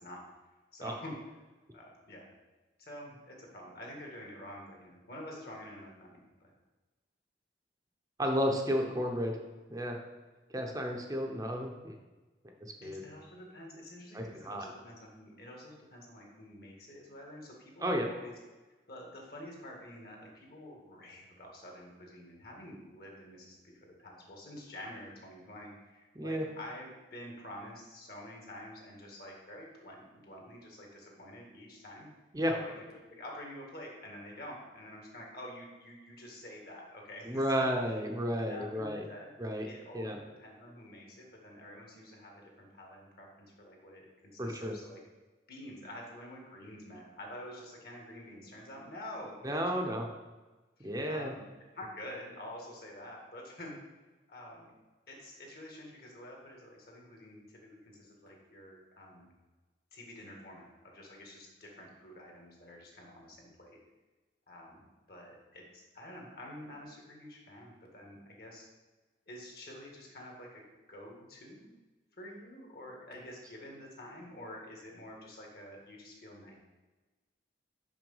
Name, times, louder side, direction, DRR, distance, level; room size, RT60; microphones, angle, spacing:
voice 1, 0.7-1.1 1.7-2.3 2.8-6.5 12.8-18.3 18.9-32.1 32.5-37.7 38.5-39.3 39.6-45.0 45.5-49.6 50.8-51.4 51.7-53.8 54.3-54.7 55.1-59.3 59.9-63.8 64.5-64.8 65.1-68.7 69.3-71.7 72.2-76.6, left 1 dB, 55° left, 0 dB, 1.7 m, -48 dB
voice 2, 8.2-9.4 9.7-10.0 10.5-11.9 12.6-13.0 14.1-14.7 17.8-18.1 26.2-26.5 32.3-32.5 37.2-39.0 39.4-39.7 39.9-40.2 44.4-44.7 49.4-50.1 50.8-51.3, equal, 20° right, 2 dB, 0.7 m, -32 dB
6.0 x 5.6 x 5.5 m, 1.2 s
head